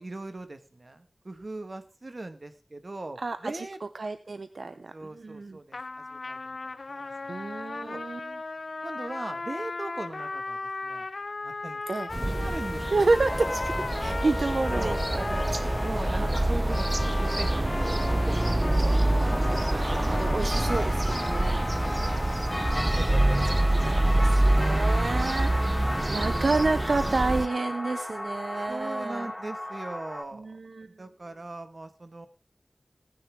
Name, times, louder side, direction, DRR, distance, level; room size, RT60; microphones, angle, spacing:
voice 1, 0.0-3.8 4.9-6.6 6.9-7.4 7.7-8.0 8.8-11.1 11.4-11.8 12.1-12.8 14.7-15.1 15.8-19.0 19.5-20.1 24.6-25.0 28.7-30.5 30.8-32.3, right 2 dB, 50° right, 9 dB, 1.6 m, -40 dB
voice 2, 3.2-5.6 7.3-8.4 11.9-12.1 12.9-16.2 19.4-21.6 22.1-29.3 30.3-31.0, right 3 dB, 75° right, 11 dB, 0.6 m, -31 dB
sound 1, 5.7-22.9, left 3 dB, 65° left, 0.6 m, -37 dB
sound 2, 12.1-27.5, right 1 dB, 30° right, 0.5 m, -26 dB
sound 3, 13.3-30.2, left 1 dB, 15° left, 1.5 m, -35 dB
18.5 x 10.0 x 3.5 m, 0.32 s
wide cardioid pair, 70°, 0 cm